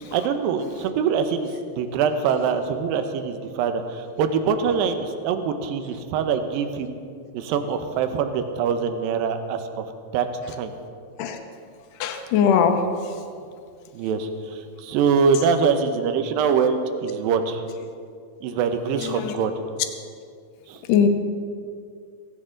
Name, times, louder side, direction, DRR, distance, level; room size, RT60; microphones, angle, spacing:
voice 1, 0.1-1.5 1.8-7.0 7.3-9.9 10.1-10.7 13.9-17.6 18.4-19.6 20.7-20.8, right 6 dB, 75° right, 7 dB, 2.2 m, -24 dB
voice 2, 12.0-12.7 19.2-19.3 20.9-21.1, left 8 dB, 80° left, 6 dB, 1.9 m, -19 dB
16.5 x 16.0 x 3.8 m, 2.3 s
omnidirectional pair, 5.0 m